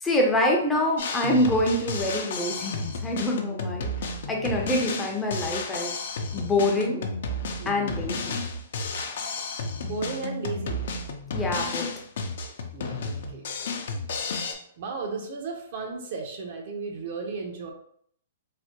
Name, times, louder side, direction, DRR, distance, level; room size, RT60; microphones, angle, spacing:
voice 1, 0.0-5.9 6.3-7.0 7.7-8.1 11.3-11.9 13.6-13.7, left 1 dB, 10° left, 0 dB, 0.5 m, -26 dB
Drum kit, 1.0-14.5, left 3 dB, 65° left, 0.5 m, -32 dB
voice 2, 7.6-8.0 9.8-10.8 12.7-13.5 14.8-17.7, right 4 dB, 55° right, 2 dB, 0.7 m, -35 dB
3.2 x 2.1 x 2.9 m, 0.65 s
hypercardioid pair, 145°, 0 cm